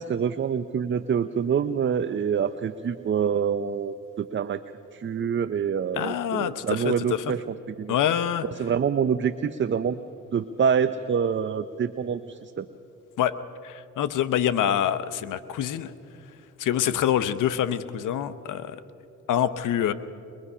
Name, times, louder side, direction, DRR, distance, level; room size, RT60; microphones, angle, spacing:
voice 1, 0.0-4.6 4.9-8.0 8.6-10.0 10.3-12.7, right 7 dB, 40° right, 12 dB, 0.6 m, -26 dB
voice 2, 6.0-7.2 7.9-8.4 13.2-13.3 13.6-15.9 16.6-18.8 19.3-19.9, left 10 dB, 80° left, 13 dB, 0.8 m, -26 dB
22.0 x 22.0 x 5.6 m, 2.8 s
cardioid pair, 80°, 31 cm